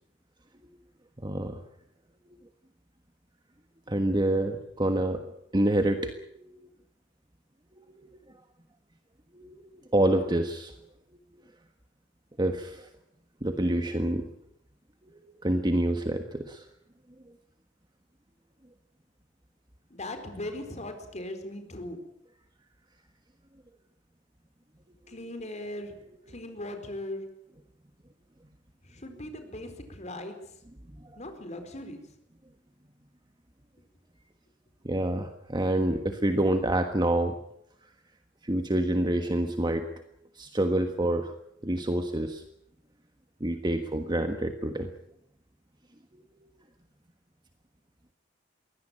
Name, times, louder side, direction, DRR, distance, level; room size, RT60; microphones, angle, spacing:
voice 1, 1.2-1.6 3.9-5.2 5.5-6.7 7.8-8.1 9.3-10.7 12.4-12.9 13.4-14.3 15.4-16.7 34.8-37.3 38.4-39.9 40.3-41.3 41.6-42.4 43.4-44.9 46.1-46.2, right 1 dB, 25° right, 6 dB, 1.5 m, -27 dB
voice 2, 19.9-22.0 25.1-26.0 26.3-27.3 28.8-30.6 31.1-32.1, left 1 dB, 40° left, 7 dB, 4.5 m, -39 dB
22.5 x 17.5 x 9.0 m, 0.78 s
head